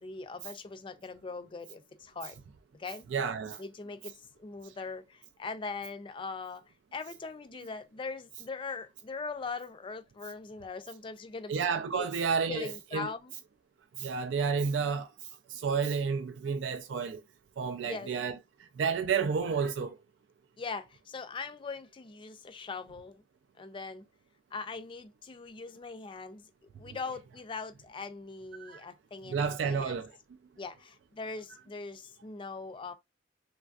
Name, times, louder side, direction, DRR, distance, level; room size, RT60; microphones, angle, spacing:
voice 1, 0.0-2.4 2.7-3.1 3.6-6.6 6.9-11.6 11.9-12.1 12.5-13.3 17.8-18.1 20.6-23.2 23.6-24.1 24.5-26.5 26.8-30.0 30.6-32.9, left 4 dB, 30° left, 0.4 m, -41 dB
voice 2, 3.1-3.6 11.5-13.1 14.0-15.1 15.5-17.2 17.6-18.4 18.8-20.0 26.9-27.0 28.6-28.8 29.3-30.1, right 6 dB, 85° right, 0.3 m, -31 dB
3.2 x 2.5 x 2.3 m
head